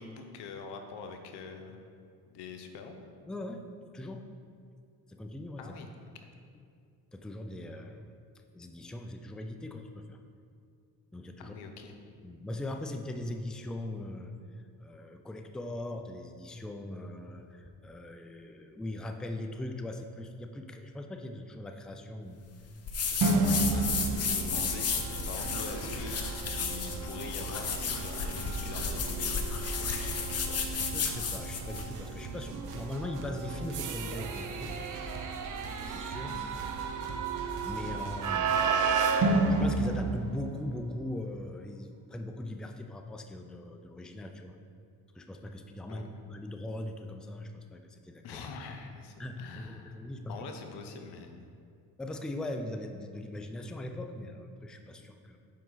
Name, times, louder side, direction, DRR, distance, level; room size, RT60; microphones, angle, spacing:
voice 1, 0.0-1.8 2.3-3.0 5.6-5.9 6.2-6.3 11.4-12.0 23.7-30.6 36.3-36.5 45.9-46.1 48.2-50.0 50.3-51.6, left 5 dB, 85° left, 5 dB, 0.8 m, -44 dB
voice 2, 3.3-3.7 3.9-4.3 5.1-5.7 7.1-8.1 8.5-10.2 11.1-11.6 12.1-14.3 14.8-22.4 23.2-23.8 30.9-34.8 35.8-36.4 37.6-38.7 39.5-44.6 45.1-48.4 49.2-50.4 52.0-55.4, left 1 dB, ahead, 5 dB, 0.4 m, -40 dB
sound 1, 22.9-31.9, left 5 dB, 40° left, 0.8 m, -33 dB
sound 2, 23.2-40.9, right 4 dB, 50° right, 0.7 m, -32 dB
sound 3, 23.5-39.0, right 3 dB, 70° right, 1.1 m, -43 dB
7.5 x 5.2 x 3.9 m, 2.3 s
cardioid pair, 90°, 39 cm